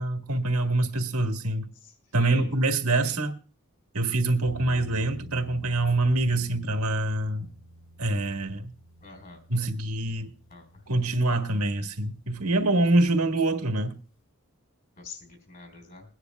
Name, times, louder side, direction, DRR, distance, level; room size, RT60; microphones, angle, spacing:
voice 1, 0.0-1.7 2.1-3.4 3.9-7.5 8.0-8.7 9.5-10.3 10.9-14.0, right 2 dB, 90° right, 1.6 m, -25 dB
voice 2, 2.2-2.5 3.0-3.2 9.0-9.4 10.5-10.6 15.0-16.0, left 4 dB, 40° left, 3.9 m, -46 dB
sound 1, 4.5-13.4, equal, 65° left, 5.7 m, -49 dB
22.0 x 9.8 x 2.3 m
head